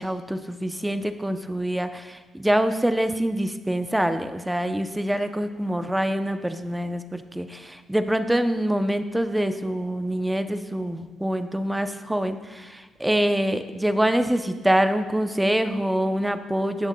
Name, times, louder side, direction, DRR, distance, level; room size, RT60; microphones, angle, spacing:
voice 1, 0.0-16.9, right 1 dB, 5° right, 9 dB, 0.6 m, -25 dB
17.5 x 7.1 x 2.3 m, 1.3 s
cardioid pair, 90°, 0 cm